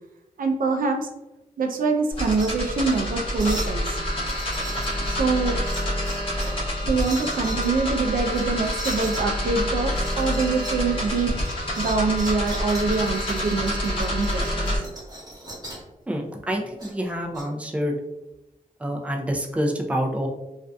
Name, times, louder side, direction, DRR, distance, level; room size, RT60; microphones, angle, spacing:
voice 1, 0.4-1.1 1.6-4.0 5.0-5.6 6.8-11.4 11.8-14.8, right 4 dB, 80° right, 4 dB, 0.4 m, -25 dB
sound 1, 2.1-14.8, equal, 40° left, 0.9 m, -27 dB
sound 2, 2.1-2.5 2.8-3.0 3.3-3.8 4.2-5.2 5.6-6.6 6.9-7.7 8.3-9.2 9.9-10.8 11.1-15.9 16.8-17.4, right 1 dB, 30° right, 1.0 m, -38 dB
voice 2, 16.1-18.0 18.8-20.3, equal, 10° right, 1 dB, 0.4 m, -27 dB
2.4 x 2.4 x 2.2 m, 0.95 s
wide cardioid pair, 85°, 14 cm